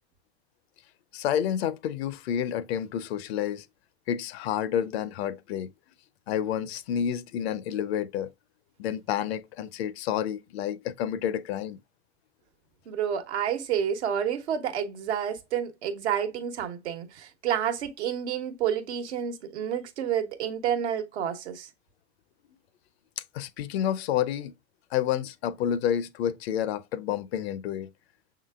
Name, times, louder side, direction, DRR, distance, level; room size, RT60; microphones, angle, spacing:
voice 1, 1.1-3.6 4.1-5.7 6.3-8.3 8.8-11.8 23.2-24.5 24.9-27.9, left 9 dB, 65° left, 0.6 m, -29 dB
voice 2, 12.9-21.7, right 9 dB, 75° right, 1.2 m, -29 dB
6.0 x 3.8 x 2.3 m
hypercardioid pair, 100°, 34 cm